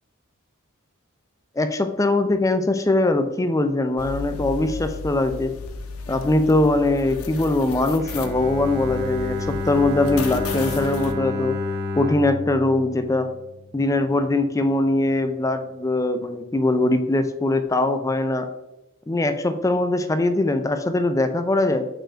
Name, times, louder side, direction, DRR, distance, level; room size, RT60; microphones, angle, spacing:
voice 1, 1.6-5.5 6.1-11.6 12.0-13.3 13.7-18.5 19.1-21.9, left 2 dB, 15° left, 9 dB, 0.4 m, -21 dB
sound 1, 4.0-11.1, left 4 dB, 80° left, 0.6 m, -34 dB
Bowed string instrument, 8.0-14.0, left 3 dB, 50° right, 0.9 m, -30 dB
5.2 x 4.5 x 4.3 m, 1.0 s
head